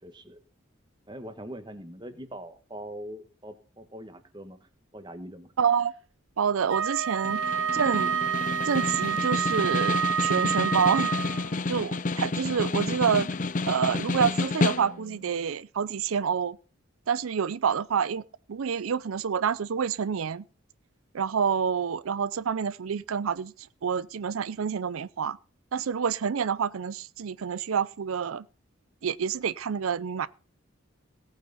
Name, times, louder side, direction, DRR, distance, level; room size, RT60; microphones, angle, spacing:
voice 1, 0.0-0.4 1.1-5.5, right 1 dB, 20° right, 1.5 m, -42 dB
voice 2, 5.6-5.9 6.4-7.4 7.7-8.2 8.6-11.1 11.7-13.3 13.7-16.6 17.1-18.2 18.5-20.4 21.1-25.4 25.7-28.4 29.0-30.3, right 7 dB, 85° right, 0.5 m, -28 dB
Wind instrument woodwind instrument, 6.7-11.6, right 8 dB, 70° right, 1.2 m, -28 dB
Snare drum, 7.2-15.2, left 3 dB, 40° left, 0.6 m, -30 dB
17.5 x 9.0 x 4.1 m
head